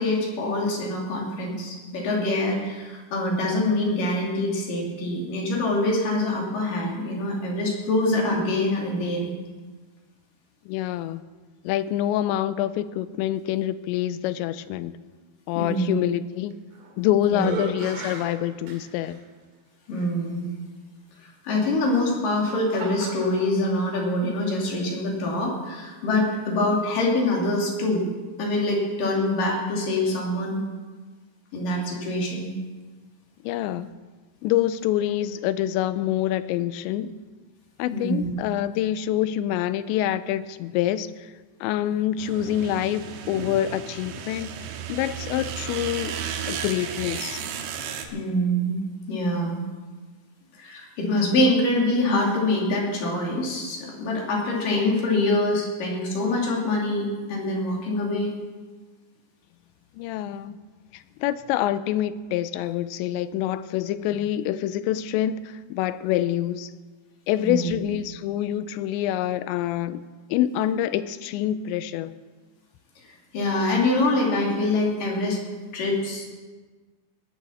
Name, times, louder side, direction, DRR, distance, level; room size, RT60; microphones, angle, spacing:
voice 1, 0.0-9.3 15.6-15.9 17.3-17.5 19.9-20.6 21.4-28.1 28.4-30.6 31.5-32.5 37.9-38.3 48.1-48.8 49.1-49.6 50.6-58.4 67.4-67.7 73.0-75.4 75.7-76.2, left 1 dB, 50° left, -2 dB, 4.0 m, -25 dB
voice 2, 10.7-11.2 11.6-14.9 15.5-16.6 17.0-19.2 33.4-33.9 34.4-37.1 37.8-41.3 41.6-44.5 44.9-47.4 60.0-60.6 60.9-66.7 67.3-72.2, left 12 dB, 85° left, 14 dB, 2.7 m, -26 dB
sound 1, 16.5-17.0 17.3-19.2 20.0-20.1 21.8-23.5, right 4 dB, 55° right, 3.2 m, -36 dB
sound 2, 42.2-48.1, right 7 dB, 75° right, 3.2 m, -34 dB
19.0 x 8.5 x 7.2 m, 1.4 s
omnidirectional pair, 5.3 m